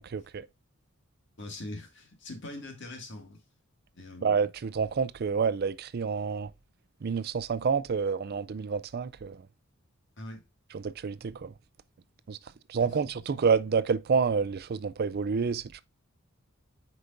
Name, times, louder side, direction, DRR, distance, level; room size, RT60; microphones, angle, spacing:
voice 1, 0.1-0.5 4.2-6.5 7.0-9.4 10.7-11.5 12.3-12.4 12.7-15.8, right 5 dB, 45° right, 0.4 m, -28 dB
voice 2, 1.4-3.4 3.9-4.4 10.2-10.4 12.7-12.9, left 2 dB, 60° left, 2.0 m, -42 dB
8.0 x 5.0 x 2.5 m
head